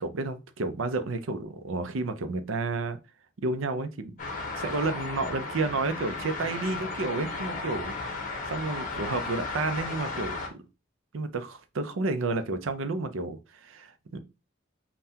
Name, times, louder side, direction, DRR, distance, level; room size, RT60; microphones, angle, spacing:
voice 1, 0.0-3.0 3.4-4.1 4.5-7.9 8.5-10.6 11.1-14.2, right 3 dB, 75° right, 0.6 m, -31 dB
sound 1, 4.2-10.5, left 3 dB, 40° left, 0.9 m, -35 dB
5.5 x 2.3 x 2.8 m
head